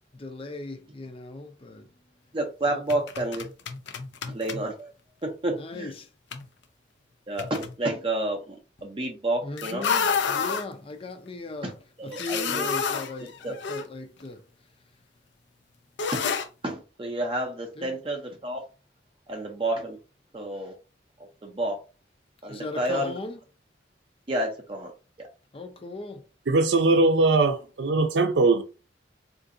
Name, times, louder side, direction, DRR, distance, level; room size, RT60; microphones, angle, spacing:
voice 1, 0.1-1.9 2.7-2.8 5.6-6.1 9.4-11.8 12.0-14.5 17.8-17.9 22.5-23.4 25.5-26.2, left 2 dB, 30° left, 0.5 m, -38 dB
voice 2, 2.3-3.5 4.3-4.9 5.2-5.9 7.3-9.9 11.6-11.7 12.0-12.7 13.4-13.5 16.1-16.3 16.6-18.6 19.3-20.0 20.3-20.7 21.4-21.8 22.4-23.1 24.3-24.9 25.2-25.3, right 1 dB, 30° right, 0.5 m, -30 dB
sound 1, 2.9-4.7 6.3-6.5 7.4-7.7 9.6-10.6 12.1-13.8 14.2-14.3 16.0-16.5, left 6 dB, 80° left, 0.5 m, -29 dB
voice 3, 26.5-28.6, right 3 dB, 75° right, 0.5 m, -21 dB
3.8 x 2.5 x 2.6 m
head